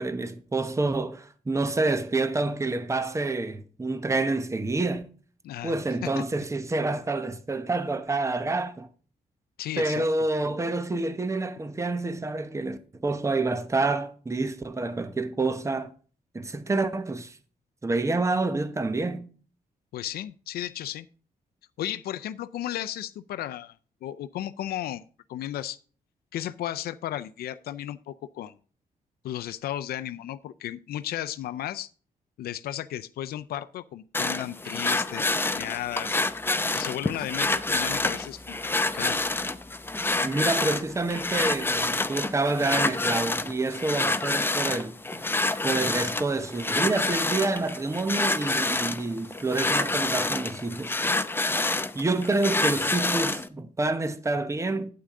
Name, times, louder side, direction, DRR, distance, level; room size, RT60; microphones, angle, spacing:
voice 1, 0.0-5.0 5.6-8.9 9.8-15.9 16.3-17.4 17.8-19.2 40.2-45.2 45.6-50.9 51.9-54.9, right 3 dB, 20° right, 0.9 m, -28 dB
voice 2, 5.4-5.7 6.0-6.2 9.6-10.0 19.9-21.1 21.8-23.8 24.0-25.0 25.3-25.8 26.3-28.5 29.2-31.9 32.4-36.2 36.7-38.6 38.9-39.2, left 12 dB, 90° left, 0.4 m, -34 dB
sound 1, 34.1-53.5, left 2 dB, 15° left, 0.7 m, -27 dB
8.7 x 8.7 x 3.7 m
cardioid pair, 100°, 15 cm